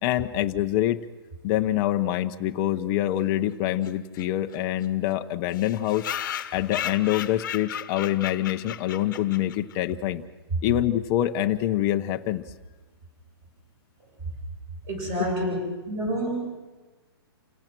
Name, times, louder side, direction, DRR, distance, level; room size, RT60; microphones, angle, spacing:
voice 1, 0.0-1.0 1.4-6.1 6.5-10.2 10.6-12.4, left 13 dB, 20° left, 6 dB, 0.8 m, -25 dB
sound 1, 3.8-3.9 4.2-4.3 4.5-4.6 4.8-4.9 5.5-9.7, left 10 dB, 50° left, 1.2 m, -35 dB
voice 2, 14.9-15.6 15.9-16.5, right 1 dB, 25° right, 1 dB, 7.5 m, -28 dB
29.0 x 17.5 x 6.1 m, 1.3 s
hypercardioid pair, 165°, 13 cm